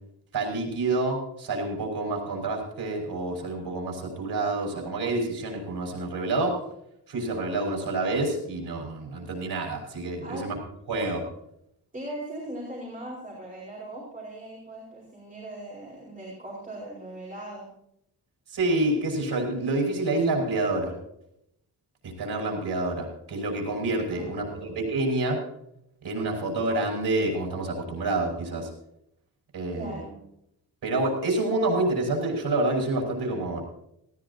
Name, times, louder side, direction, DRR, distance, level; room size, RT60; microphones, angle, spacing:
voice 1, 0.3-6.6 7.1-10.5 10.9-11.2 18.5-20.9 22.0-25.4 26.0-28.7 29.5-30.0 30.8-33.6, right 2 dB, 80° right, 0 dB, 6.3 m, -28 dB
voice 2, 11.9-17.7 24.1-24.7 29.7-30.2, right 1 dB, 20° right, -4 dB, 4.9 m, -39 dB
18.5 x 17.5 x 2.9 m, 0.76 s
wide cardioid pair, 150°, 40 cm